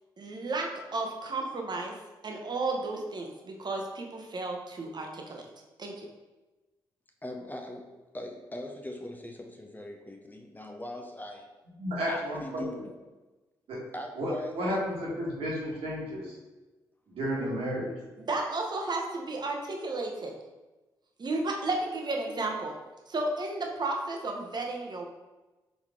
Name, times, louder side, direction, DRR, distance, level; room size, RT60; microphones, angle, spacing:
voice 1, 0.2-1.9 2.2-5.4 5.8-6.1 18.2-20.3 21.2-22.8 23.1-25.1, right 2 dB, 45° right, 1 dB, 0.9 m, -33 dB
voice 2, 7.2-11.5 12.1-12.9 13.9-14.8, left 1 dB, 15° left, 3 dB, 0.6 m, -40 dB
voice 3, 11.8-12.6 13.7-13.8 14.2-16.3 17.1-17.9, equal, 70° right, -5 dB, 1.5 m, -32 dB
4.0 x 3.0 x 3.6 m, 1.1 s
hypercardioid pair, 45°, 10 cm